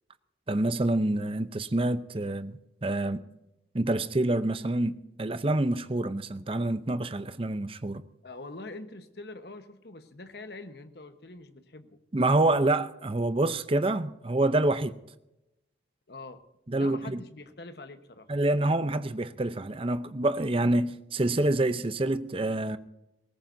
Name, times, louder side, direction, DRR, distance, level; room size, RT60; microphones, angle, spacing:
voice 1, 0.5-3.2 3.7-4.9 5.2-8.0 12.1-14.9 16.7-17.2 18.3-22.8, right 2 dB, 30° right, 0.6 m, -27 dB
voice 2, 8.2-12.0 16.1-16.4 16.7-18.3, left 2 dB, 60° left, 1.2 m, -44 dB
20.0 x 17.5 x 2.7 m
head